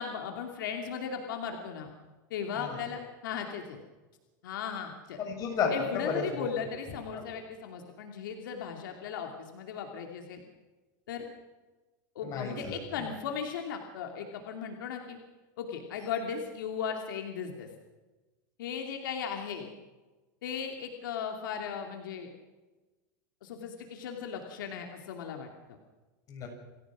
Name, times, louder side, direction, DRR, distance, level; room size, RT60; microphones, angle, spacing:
voice 1, 0.0-1.9 2.3-3.8 4.4-5.2 5.7-10.4 11.1-11.3 12.1-15.2 15.6-17.7 18.6-19.7 20.4-22.3 23.4-25.8, left 7 dB, 85° left, 3 dB, 2.7 m, -37 dB
voice 2, 5.2-6.4 7.1-7.2 12.2-12.8 26.3-26.5, left 5 dB, 35° left, 2 dB, 7.1 m, -32 dB
28.0 x 15.0 x 6.2 m, 1.2 s
supercardioid pair, 140°, 11 cm